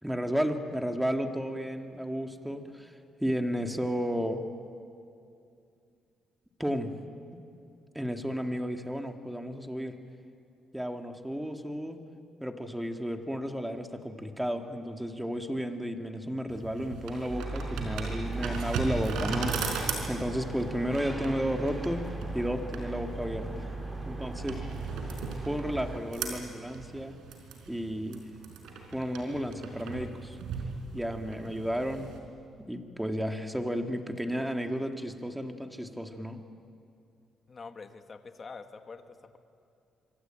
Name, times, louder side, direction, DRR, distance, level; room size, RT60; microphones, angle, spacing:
voice 1, 0.0-2.9 3.2-4.4 6.6-6.9 7.9-9.9 10.7-12.0 12.4-22.0 22.3-23.7 24.1-24.6 25.5-27.2 27.7-28.2 28.9-30.4 30.9-32.1 32.7-36.4, equal, 5° right, 5 dB, 2.1 m, -33 dB
sound 1, 16.5-32.2, right 5 dB, 85° right, 4.7 m, -38 dB
sound 2, 17.3-26.0, right 2 dB, 20° right, 6.1 m, -37 dB
voice 2, 37.5-39.4, left 4 dB, 40° left, 7 dB, 1.8 m, -46 dB
26.0 x 24.0 x 8.9 m, 2.5 s
cardioid pair, 90°, 0 cm